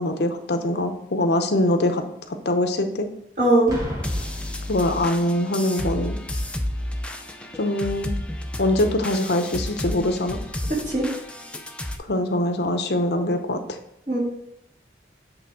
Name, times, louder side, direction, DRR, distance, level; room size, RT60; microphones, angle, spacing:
voice 1, 0.0-2.0 2.3-3.1 4.7-6.2 7.5-8.2 8.6-10.4 12.1-13.8, left 1 dB, 70° left, 6 dB, 0.8 m, -23 dB
voice 2, 3.4-3.8 10.7-11.1 14.1-14.2, right 1 dB, 40° right, -6 dB, 2.8 m, -20 dB
Boom, 3.7-5.4 6.3-6.6, equal, 20° right, 1.8 m, -35 dB
sound 1, 4.0-12.0, left 1 dB, 5° left, 0.5 m, -31 dB
8.4 x 3.4 x 4.8 m, 0.78 s
head